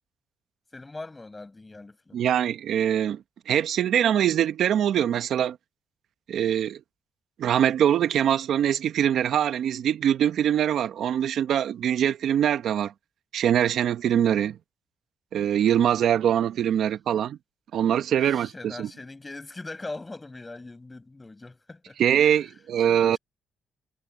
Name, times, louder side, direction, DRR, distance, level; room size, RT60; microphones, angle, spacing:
voice 1, 0.7-2.2 18.2-22.5 22.9-23.2, left 2 dB, 20° left, 6.9 m, -41 dB
voice 2, 2.1-5.6 6.3-6.8 7.4-12.9 13.3-14.6 15.3-17.4 17.7-18.9 22.0-23.2, right 10 dB, 70° right, 0.8 m, -23 dB
cardioid pair, 90°, 0 cm